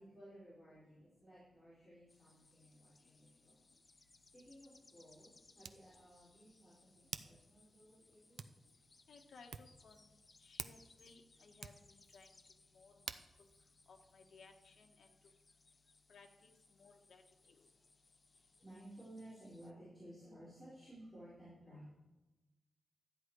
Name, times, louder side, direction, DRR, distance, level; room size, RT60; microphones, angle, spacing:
voice 1, 0.0-3.6 3.9-5.3 5.5-8.4 17.5-17.6 18.3-21.9, right 1 dB, 5° left, -10 dB, 4.4 m, -57 dB
sound 1, 2.1-19.7, left 3 dB, 30° left, 0.7 m, -69 dB
Hands, 4.0-14.8, right 6 dB, 80° right, 0.6 m, -54 dB
voice 2, 9.1-10.1 10.4-12.3 12.7-13.5 13.9-15.1 16.1-17.2 17.5-17.6, left 4 dB, 70° left, 3 dB, 1.5 m, -62 dB
13.0 x 9.6 x 4.8 m, 1.1 s
wide cardioid pair, 145°, 0 cm